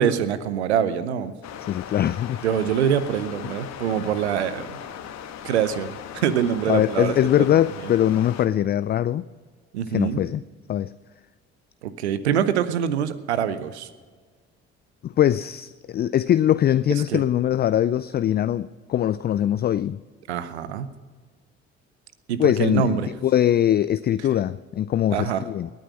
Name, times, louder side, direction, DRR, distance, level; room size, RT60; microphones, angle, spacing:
voice 1, 0.0-1.3 2.4-4.8 5.4-7.6 9.7-10.2 11.8-13.9 17.1-17.2 20.3-20.9 22.3-23.1 25.1-25.4, right 8 dB, 80° right, 14 dB, 0.8 m, -24 dB
sound 1, 1.4-8.5, left 9 dB, 55° left, 1.4 m, -38 dB
voice 2, 1.6-2.4 6.7-9.3 9.9-10.4 10.7-10.9 15.0-20.0 22.4-23.0 23.2-25.7, left 11 dB, 30° left, 15 dB, 0.4 m, -22 dB
19.5 x 9.3 x 6.1 m, 1.5 s
figure-of-eight pair, 50°, 32 cm